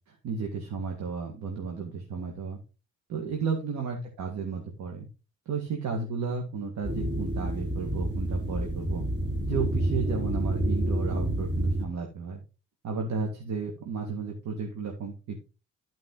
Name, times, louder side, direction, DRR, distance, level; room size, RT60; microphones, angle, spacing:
voice 1, 0.1-2.6 3.1-5.1 5.5-9.1 9.4-12.4 12.8-15.4, right 5 dB, 70° right, 1 dB, 2.1 m, -33 dB
sound 1, 6.8-11.9, right 1 dB, 35° right, 3.7 m, -28 dB
12.0 x 5.1 x 3.9 m, 0.32 s
cardioid pair, 90°, 30 cm